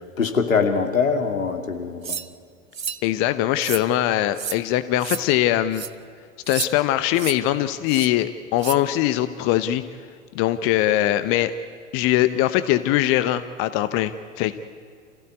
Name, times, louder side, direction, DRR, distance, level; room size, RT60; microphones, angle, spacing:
voice 1, 0.2-2.2, left 5 dB, 75° left, 5 dB, 2.7 m, -23 dB
sound 1, 2.0-2.3 2.7-3.0 3.6-3.9 4.4-4.6 5.0-5.2 5.7-5.9 6.5-6.7 7.2-7.4 7.9-8.1 8.6-8.8, right 7 dB, 85° right, 0.9 m, -30 dB
voice 2, 3.0-5.8 6.5-9.8 10.3-11.5 11.9-14.5, left 13 dB, 35° left, 12 dB, 0.9 m, -21 dB
28.0 x 16.0 x 9.6 m, 2.2 s
figure-of-eight pair, 95°, 40 cm